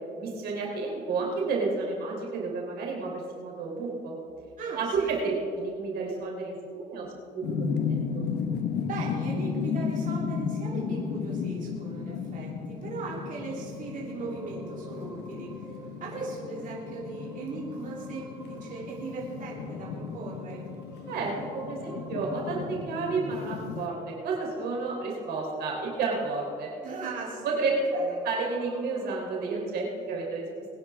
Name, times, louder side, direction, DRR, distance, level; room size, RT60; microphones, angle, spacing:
voice 1, 0.2-4.2 4.8-8.2 21.1-26.7 27.4-28.0 28.2-30.7, right 3 dB, 75° right, -1 dB, 3.5 m, -31 dB
voice 2, 4.6-5.1 8.8-20.7 26.8-27.7 28.0-28.2, right 3 dB, 50° right, -5 dB, 3.2 m, -38 dB
sound 1, 7.4-23.9, left 6 dB, 80° left, 1.2 m, -34 dB
sound 2, 13.1-29.5, right 2 dB, 15° right, 1.5 m, -50 dB
22.0 x 10.0 x 3.6 m, 2.4 s
cardioid pair, 110°, 17 cm